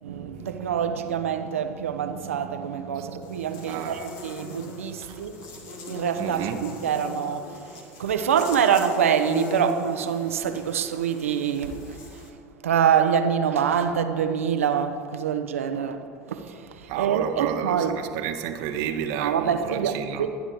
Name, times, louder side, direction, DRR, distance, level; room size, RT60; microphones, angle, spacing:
voice 1, 0.0-5.4 5.8-12.3 12.6-18.0 19.2-20.3, right 8 dB, 80° right, 1.2 m, -26 dB
Buzz, 3.2-12.3, left 2 dB, 60° left, 2.6 m, -39 dB
voice 2, 3.7-4.0 5.0-5.1 6.2-6.6 16.9-20.3, right 9 dB, 65° right, 1.3 m, -31 dB
24.5 x 10.0 x 4.6 m
hypercardioid pair, 75°, 7 cm